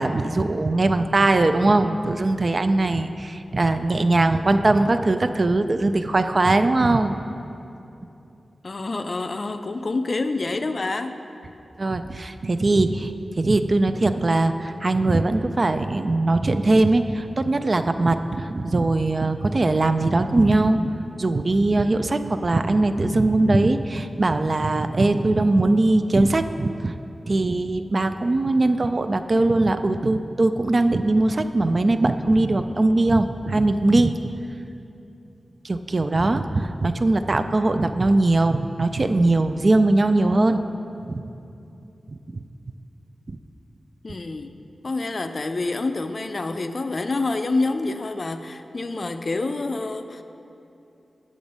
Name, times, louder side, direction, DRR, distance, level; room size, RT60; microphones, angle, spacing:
voice 1, 0.0-7.2 11.8-26.9 27.3-34.3 35.6-40.6 41.1-41.2 42.3-42.4 43.3-43.4, right 2 dB, 40° right, 8 dB, 0.3 m, -21 dB
voice 2, 8.6-11.1 44.0-44.5 44.8-50.2, left 3 dB, 45° left, 8 dB, 0.4 m, -27 dB
8.6 x 6.1 x 5.3 m, 2.8 s
wide cardioid pair, 100°, 0 cm